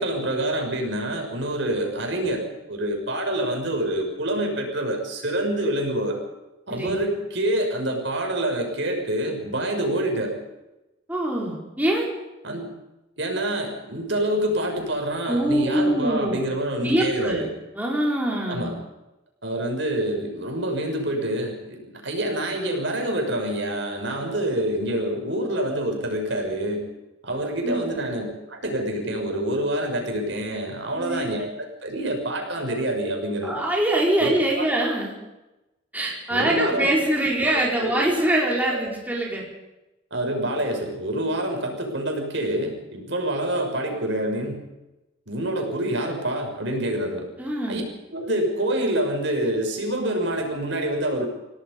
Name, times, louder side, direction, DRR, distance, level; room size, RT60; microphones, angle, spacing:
voice 1, 0.0-6.2 6.7-10.4 12.4-12.7 13.2-17.5 18.5-18.7 19.4-26.9 27.2-33.6 34.2-34.7 36.3-36.9 37.8-37.9 38.7-38.8 40.1-44.6 45.3-47.3 47.7-47.8 48.1-51.3, right 1 dB, 65° right, 2 dB, 6.3 m, -26 dB
voice 2, 11.1-12.1 15.3-16.4 16.8-17.4 17.7-18.7 27.6-27.8 30.9-31.3 33.4-35.1 35.9-39.4 47.4-47.8, right 1 dB, 10° right, -3 dB, 4.7 m, -23 dB
29.0 x 18.0 x 5.5 m, 0.98 s
head